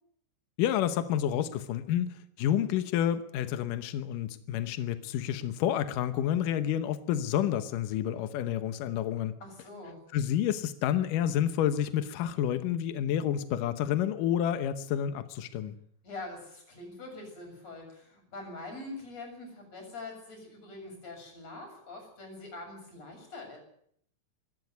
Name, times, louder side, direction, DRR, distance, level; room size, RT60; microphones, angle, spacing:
voice 1, 0.6-9.3 10.1-15.7, left 10 dB, 80° left, 11 dB, 1.9 m, -29 dB
voice 2, 9.4-10.0 16.0-23.6, left 2 dB, 35° left, 2 dB, 8.1 m, -44 dB
25.0 x 12.5 x 9.5 m, 0.69 s
omnidirectional pair, 5.2 m